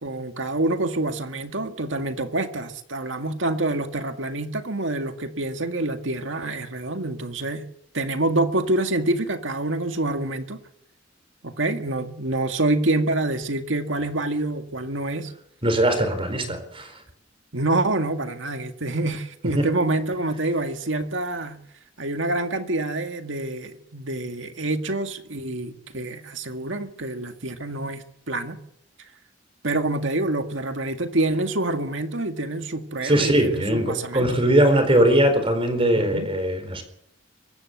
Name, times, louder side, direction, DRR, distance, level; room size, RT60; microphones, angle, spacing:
voice 1, 0.0-7.6 7.9-10.6 11.4-15.3 17.5-21.6 22.0-28.6 29.6-34.4 35.9-36.3, right 2 dB, 80° right, 6 dB, 2.0 m, -26 dB
voice 2, 15.6-17.0 19.4-19.7 33.0-36.8, right 1 dB, 30° right, 8 dB, 4.4 m, -20 dB
24.0 x 13.5 x 8.1 m, 0.73 s
head